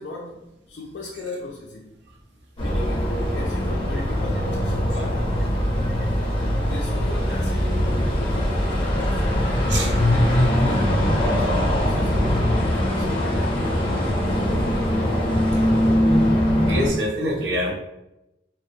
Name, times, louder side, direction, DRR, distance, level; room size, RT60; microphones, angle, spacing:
voice 1, 0.0-1.9 2.6-5.5 6.4-9.3 9.8-14.2, left 2 dB, 75° left, -2 dB, 0.3 m, -37 dB
sound 1, 2.6-16.9, equal, 30° left, 0.6 m, -21 dB
voice 2, 16.7-17.7, equal, 80° right, 0 dB, 0.6 m, -25 dB
2.5 x 2.1 x 2.6 m, 0.90 s
head